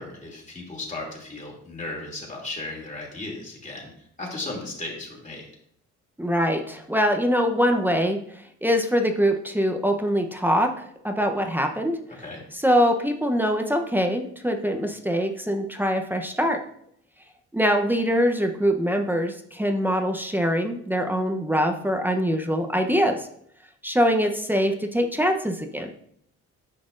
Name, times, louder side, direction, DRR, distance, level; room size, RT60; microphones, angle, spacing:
voice 1, 0.0-3.9 4.2-5.4 12.2-12.4, left 2 dB, 25° left, -2 dB, 2.7 m, -35 dB
voice 2, 6.2-8.2 8.6-12.0 12.5-16.6 17.5-23.3 23.8-25.9, equal, 5° right, 4 dB, 0.8 m, -23 dB
9.6 x 6.0 x 2.5 m, 0.67 s
cardioid pair, 90°, 30 cm